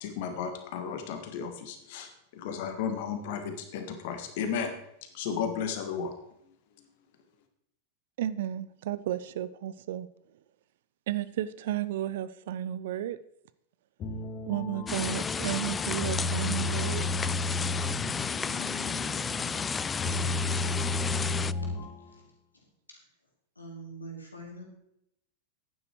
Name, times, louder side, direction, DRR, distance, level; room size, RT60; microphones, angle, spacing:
voice 1, 0.0-4.7 5.1-6.1, left 7 dB, 50° left, 6 dB, 1.6 m, -34 dB
voice 2, 8.2-10.1 11.1-13.2 14.5-17.0, right 12 dB, 55° right, 17 dB, 0.5 m, -33 dB
sound 1, 14.0-22.1, left 3 dB, 30° left, 2.1 m, -34 dB
sound 2, 14.9-21.5, left 5 dB, 15° left, 0.3 m, -32 dB
voice 3, 21.1-21.7 22.0-22.2 22.9-23.0 23.5-24.6, right 2 dB, 80° left, 0 dB, 3.2 m, -45 dB
11.0 x 9.5 x 4.7 m, 0.77 s
figure-of-eight pair, 90°, 0 cm